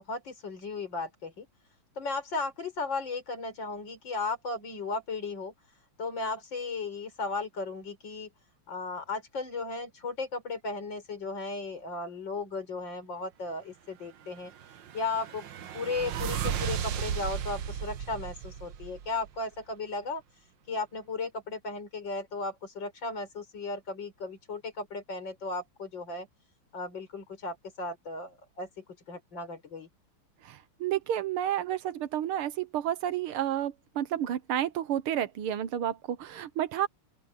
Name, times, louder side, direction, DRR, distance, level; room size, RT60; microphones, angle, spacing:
voice 1, 0.0-1.5 2.0-5.5 6.0-8.3 8.7-14.5 14.9-15.5 15.7-20.2 20.7-26.3 26.7-29.9, left 3 dB, 60° left, 5.8 m, -35 dB
sound 1, 14.4-19.4, right 9 dB, 65° right, 1.6 m, -35 dB
voice 2, 30.4-36.9, right 11 dB, 90° right, 2.0 m, -31 dB
open air
omnidirectional pair, 2.3 m